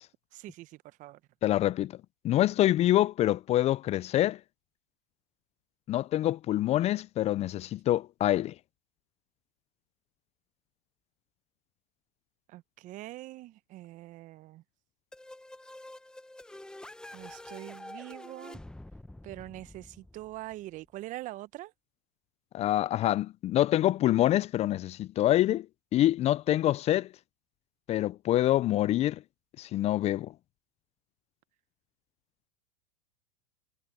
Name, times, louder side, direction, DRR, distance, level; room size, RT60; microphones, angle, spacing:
voice 1, 0.3-1.2 12.5-14.6 17.1-18.6 19.2-21.7, right 16 dB, 45° right, 1.1 m, -43 dB
voice 2, 1.4-1.9 2.2-4.4 5.9-8.5 22.5-25.7 25.9-27.1 27.9-29.2 29.6-30.3, left 13 dB, 35° left, 0.6 m, -26 dB
sound 1, 15.1-20.8, left 1 dB, 5° left, 1.1 m, -47 dB
hypercardioid pair, 95°, 19 cm